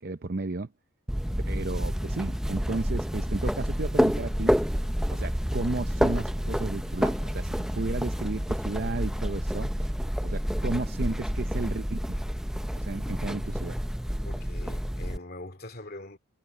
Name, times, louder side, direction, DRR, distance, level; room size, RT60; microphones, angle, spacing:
voice 1, 0.0-0.7 1.5-4.5 5.1-9.9 10.2-12.2 12.8-13.8, right 2 dB, 45° right, 0.7 m, -33 dB
sound 1, 1.1-15.2, equal, 5° right, 0.5 m, -29 dB
sound 2, 3.2-5.0 6.2-8.1, right 1 dB, 75° right, 5.8 m, -53 dB
voice 2, 14.2-16.2, left 1 dB, 45° left, 2.6 m, -43 dB
head